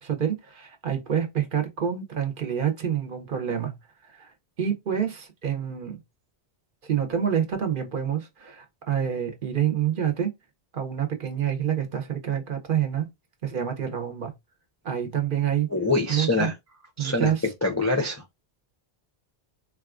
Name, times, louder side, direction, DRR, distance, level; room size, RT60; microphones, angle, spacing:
voice 1, 0.0-3.7 4.1-4.3 4.6-6.0 6.8-10.3 10.7-13.1 13.4-14.3 14.8-15.7 16.1-16.5 17.0-17.5, right 9 dB, 55° right, 0.9 m, -27 dB
voice 2, 15.7-16.5 17.0-17.3 17.6-18.2, left 2 dB, 25° left, 0.4 m, -24 dB
3.9 x 2.3 x 2.4 m
omnidirectional pair, 1.1 m